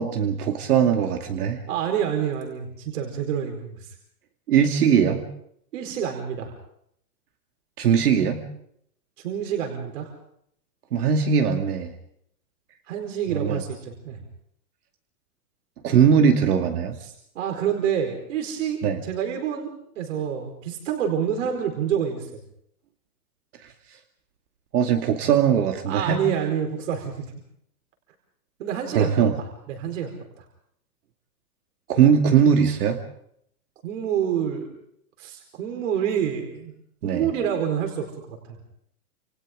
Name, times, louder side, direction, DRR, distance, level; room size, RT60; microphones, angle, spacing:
voice 1, 0.0-1.6 4.5-5.2 7.8-8.4 10.9-11.9 13.3-13.6 15.8-16.9 18.8-19.0 24.7-26.2 28.9-29.3 31.9-33.0 37.0-37.3, right 7 dB, 75° right, 4 dB, 2.4 m, -20 dB
voice 2, 1.7-3.9 5.7-6.5 9.2-10.1 12.9-14.2 17.0-19.7 20.0-22.3 25.9-27.2 28.6-29.1 29.7-30.1 30.4-30.5 33.8-34.7 35.2-36.7 37.0-38.4, right 8 dB, 55° right, 3 dB, 4.6 m, -27 dB
29.5 x 28.5 x 3.8 m, 0.71 s
supercardioid pair, 180°, 46 cm